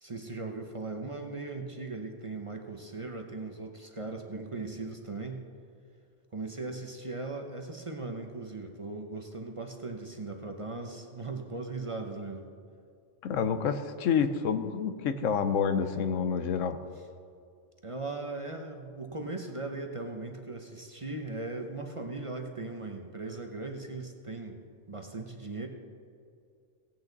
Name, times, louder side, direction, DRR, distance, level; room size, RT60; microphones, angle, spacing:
voice 1, 0.0-5.4 6.3-12.4 17.8-24.6 24.9-25.7, right 3 dB, 30° right, 3 dB, 0.8 m, -38 dB
voice 2, 13.2-16.8, left 6 dB, 85° left, 10 dB, 1.1 m, -28 dB
17.0 x 8.5 x 4.0 m, 2.4 s
omnidirectional pair, 1.3 m